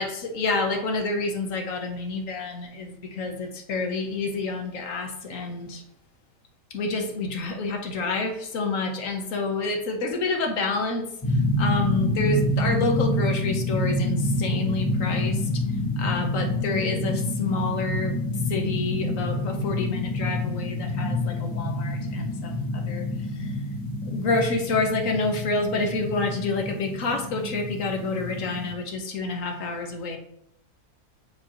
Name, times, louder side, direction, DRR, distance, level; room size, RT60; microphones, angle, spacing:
voice 1, 0.0-5.8 6.7-15.6 16.0-23.1 23.3-23.5 24.1-30.2, left 3 dB, 60° left, 4 dB, 1.3 m, -28 dB
sound 1, 11.2-28.7, left 1 dB, 15° left, 1.2 m, -27 dB
7.1 x 4.9 x 3.0 m, 0.74 s
omnidirectional pair, 1.6 m